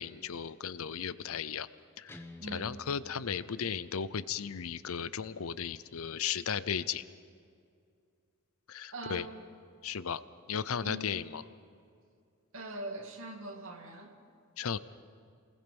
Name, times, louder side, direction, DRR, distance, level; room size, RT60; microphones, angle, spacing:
voice 1, 0.0-1.7 2.0-2.2 2.5-7.0 8.7-9.3 9.8-10.2 10.5-11.4 14.6-14.8, left 7 dB, 65° left, 16 dB, 0.6 m, -35 dB
Guitar, 2.1-4.1, left 2 dB, 10° left, 1.1 m, -52 dB
voice 2, 2.4-2.8 8.9-9.4 10.8-11.1 12.5-14.2, right 1 dB, 60° right, 3 dB, 2.4 m, -42 dB
28.0 x 20.5 x 5.4 m, 2.4 s
head